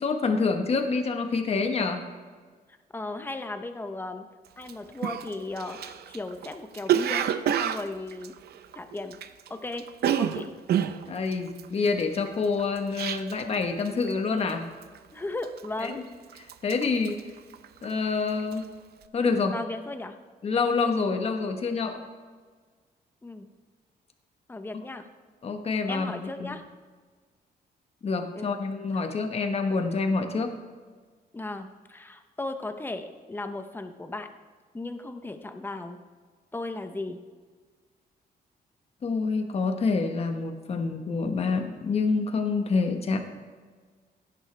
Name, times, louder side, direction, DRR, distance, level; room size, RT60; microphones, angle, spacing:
voice 1, 0.0-2.0 11.0-14.7 15.8-15.9 16.4-17.2 17.8-18.7 19.1-19.6 20.4-22.0 25.4-26.1 26.4-26.5 28.0-30.5 39.0-43.2, left 4 dB, 40° left, 5 dB, 1.2 m, -27 dB
voice 2, 2.9-4.2 4.6-7.3 7.6-8.3 8.8-9.2 9.5-10.5 15.1-16.0 19.5-20.1 23.2-23.5 24.5-25.1 25.9-26.6 28.4-28.5 28.9-29.0 31.3-34.3 34.7-36.0 36.5-37.2, left 2 dB, 15° left, 7 dB, 0.8 m, -36 dB
Cough, 4.6-4.7 5.0-9.5 9.7-13.6 13.9-14.2 14.5-15.0 15.4-16.0 16.3-18.0 18.3-18.6, right 9 dB, 80° right, 0.6 m, -28 dB
16.5 x 10.0 x 3.4 m, 1.5 s
cardioid pair, 145°, 16 cm